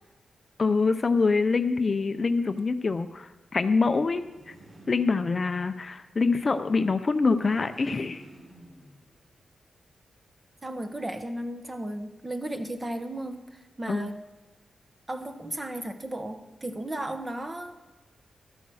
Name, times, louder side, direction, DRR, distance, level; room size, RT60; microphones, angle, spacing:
voice 1, 0.6-4.5 4.9-8.2 13.9-14.1, left 4 dB, 40° left, 10 dB, 0.5 m, -25 dB
sound 1, 4.2-5.8 7.2-9.3, right 1 dB, 40° right, 4.0 m, -52 dB
voice 2, 10.6-13.5 13.8-14.2 15.1-17.8, right 1 dB, 20° right, 7 dB, 1.0 m, -34 dB
13.0 x 8.3 x 6.3 m, 1.2 s
cardioid pair, 100°, 0 cm